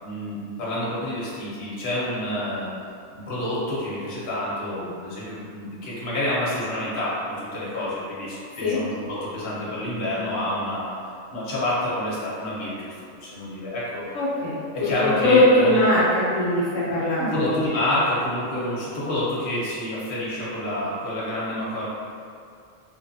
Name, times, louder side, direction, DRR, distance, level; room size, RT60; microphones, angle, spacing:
voice 1, 0.0-2.7 3.1-14.0 14.7-15.8 17.2-21.9, left 1 dB, 45° left, -8 dB, 0.8 m, -28 dB
voice 2, 14.1-17.6, left 1 dB, 70° left, -7 dB, 0.9 m, -21 dB
2.9 x 2.3 x 2.6 m, 2.4 s
omnidirectional pair, 1.4 m